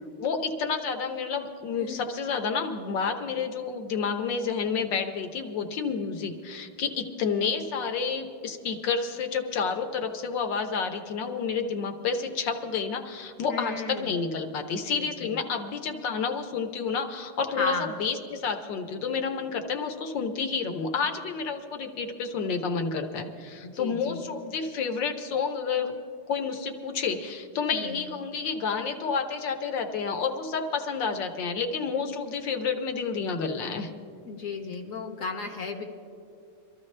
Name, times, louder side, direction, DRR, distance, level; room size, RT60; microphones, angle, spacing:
voice 1, 0.2-25.9 26.3-33.9, left 5 dB, 65° left, 5 dB, 1.4 m, -30 dB
voice 2, 13.5-14.1 14.9-15.1 17.5-17.9 23.6-24.3 27.7-28.0 34.2-35.8, left 4 dB, 45° left, 2 dB, 1.2 m, -34 dB
24.0 x 13.5 x 3.3 m, 2.4 s
omnidirectional pair, 2.4 m